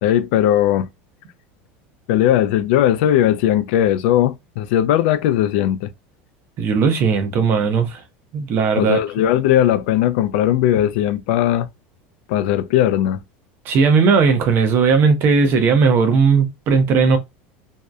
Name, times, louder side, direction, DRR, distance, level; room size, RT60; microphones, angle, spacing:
voice 1, 0.0-0.9 2.1-5.9 8.8-11.7 12.3-13.2, left 11 dB, 70° left, 0.4 m, -18 dB
voice 2, 6.6-8.0 8.3-9.0 13.7-17.2, right 5 dB, 40° right, 0.6 m, -16 dB
2.6 x 2.1 x 2.3 m
supercardioid pair, 150°, 6 cm